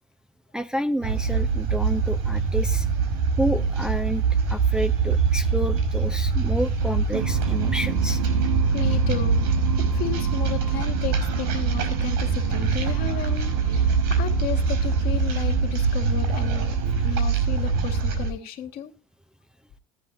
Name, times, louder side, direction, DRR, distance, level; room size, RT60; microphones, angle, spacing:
voice 1, 0.5-2.9 3.4-8.2, equal, 5° right, 6 dB, 0.7 m, -29 dB
sound 1, 1.0-18.3, right 5 dB, 70° right, 5.2 m, -23 dB
sound 2, 7.1-18.0, right 10 dB, 90° right, 1.4 m, -34 dB
voice 2, 8.7-9.4 9.7-16.8 17.0-18.9, left 9 dB, 55° left, 5 dB, 2.1 m, -33 dB
15.5 x 10.5 x 2.8 m, 0.32 s
hypercardioid pair, 80°, 18 cm